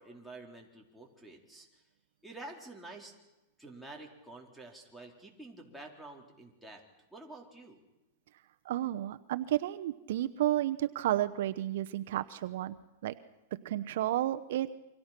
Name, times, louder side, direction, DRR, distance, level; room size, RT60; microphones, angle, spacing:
voice 1, 0.0-1.8 2.2-3.1 3.6-6.8 7.1-7.8, right 2 dB, ahead, -1 dB, 4.1 m, -49 dB
voice 2, 8.6-13.2 13.5-14.7, right 13 dB, 70° right, 11 dB, 0.9 m, -32 dB
28.5 x 25.0 x 6.0 m, 0.99 s
supercardioid pair, 140°, 0 cm